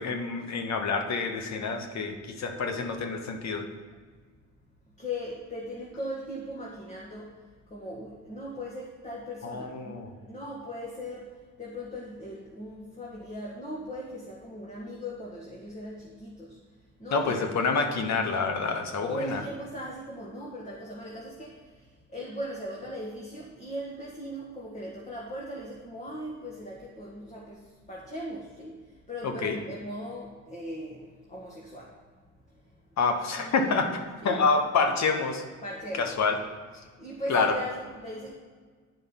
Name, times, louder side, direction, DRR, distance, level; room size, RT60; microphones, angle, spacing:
voice 1, 0.0-3.6 9.4-10.1 17.1-19.4 29.2-29.6 33.0-35.4 36.0-36.4 37.3-37.5, left 4 dB, 60° left, 5 dB, 1.2 m, -27 dB
voice 2, 5.0-16.6 17.0-17.4 19.0-32.0 32.5-32.8 33.3-33.9 34.2-34.4 35.6-36.2 36.8-38.3, equal, 20° left, -3 dB, 1.6 m, -39 dB
9.4 x 5.3 x 5.6 m, 1.5 s
cardioid pair, 105°, 31 cm